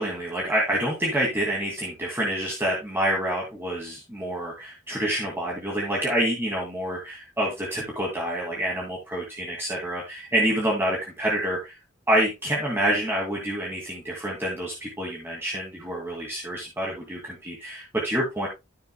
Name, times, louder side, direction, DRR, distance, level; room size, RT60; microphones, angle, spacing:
voice 1, 0.0-11.8 12.1-18.5, right 1 dB, 10° right, -3 dB, 2.4 m, -27 dB
13.5 x 6.7 x 2.3 m, 0.23 s
head